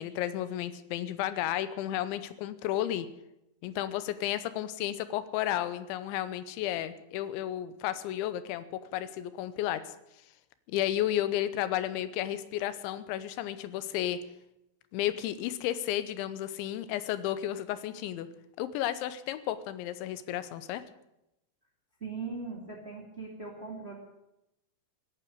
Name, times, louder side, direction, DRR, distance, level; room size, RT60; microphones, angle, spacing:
voice 1, 0.0-3.1 3.6-9.8 10.7-14.2 14.9-18.3 18.6-20.8, left 12 dB, 85° left, 14 dB, 3.2 m, -32 dB
voice 2, 22.0-23.9, right 4 dB, 20° right, 1 dB, 1.9 m, -39 dB
16.5 x 9.2 x 9.4 m, 0.87 s
omnidirectional pair, 5.2 m